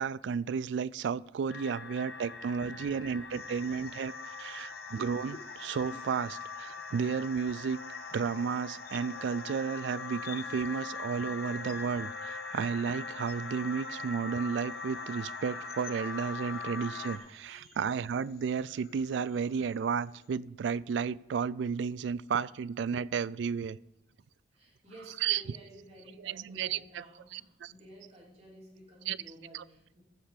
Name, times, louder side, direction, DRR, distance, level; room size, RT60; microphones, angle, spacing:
voice 1, 0.0-7.8 8.1-23.8 25.2-25.4 26.2-27.0 27.3-27.7 29.1-29.2 29.5-29.6, right 6 dB, 80° right, 0.3 m, -33 dB
sound 1, 1.5-17.2, left 4 dB, 70° left, 1.0 m, -41 dB
voice 2, 1.6-4.0 16.8-17.8 19.2-19.4 24.5-30.0, right 1 dB, 35° right, 3.2 m, -55 dB
sound 2, 3.3-20.3, left 8 dB, 55° left, 0.6 m, -56 dB
14.5 x 5.7 x 5.0 m
head